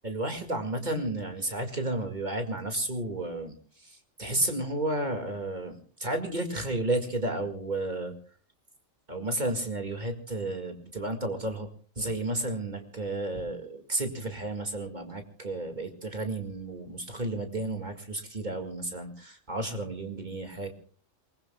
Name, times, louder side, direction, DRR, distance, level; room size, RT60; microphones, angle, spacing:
voice 1, 0.0-8.2 9.1-11.7 12.0-20.7, right 2 dB, 35° right, 5 dB, 2.2 m, -32 dB
28.0 x 20.0 x 2.3 m, 0.41 s
omnidirectional pair, 1.3 m